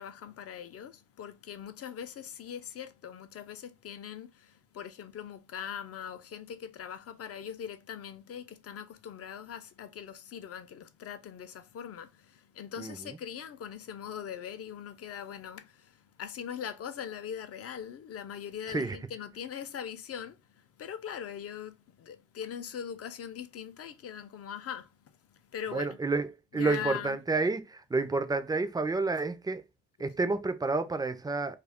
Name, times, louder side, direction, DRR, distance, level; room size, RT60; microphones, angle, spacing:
voice 1, 0.0-20.4 20.8-24.9 25.5-26.0 26.5-27.2, left 8 dB, 50° left, 0.5 m, -41 dB
voice 2, 25.7-26.3 26.5-29.6 30.0-31.6, right 3 dB, 15° right, 0.4 m, -29 dB
2.4 x 2.3 x 3.4 m
cardioid pair, 90°, 30 cm